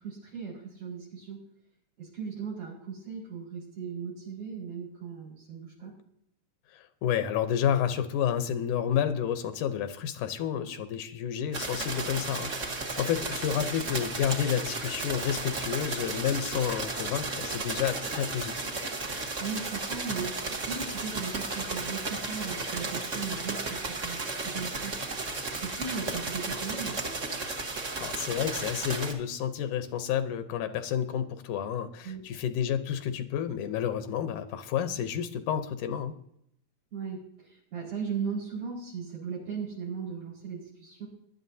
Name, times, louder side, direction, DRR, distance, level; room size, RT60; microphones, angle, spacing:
voice 1, 0.0-1.4 2.0-5.9 19.4-24.2 24.4-25.0 25.5-27.0 32.0-32.3 36.9-41.1, right 6 dB, 90° right, -8 dB, 6.4 m, -37 dB
voice 2, 6.7-18.8 28.0-36.1, left 9 dB, 85° left, 9 dB, 2.3 m, -30 dB
sound 1, 11.5-29.1, right 3 dB, 40° right, 1.1 m, -34 dB
20.5 x 11.5 x 2.8 m, 0.72 s
omnidirectional pair, 3.5 m